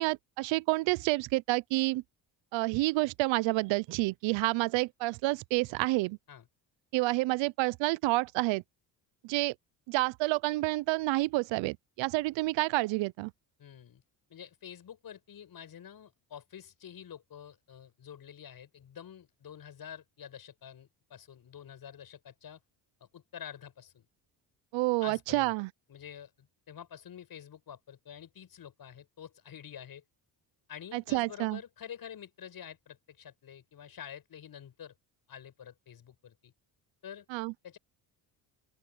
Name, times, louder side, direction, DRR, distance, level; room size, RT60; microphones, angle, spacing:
voice 1, 0.0-2.0 2.5-6.2 6.9-8.6 9.2-9.5 9.9-13.3 24.7-25.7 30.9-31.6 37.3-37.5, right 21 dB, 85° right, 0.7 m, -29 dB
voice 2, 13.6-14.0 14.3-22.6 23.0-24.1 25.0-25.5 25.9-30.0 30.7-34.9 35.3-36.5 37.0-37.2 37.6-37.8, left 9 dB, 50° left, 7.0 m, -48 dB
open air
cardioid pair, 95°, 44 cm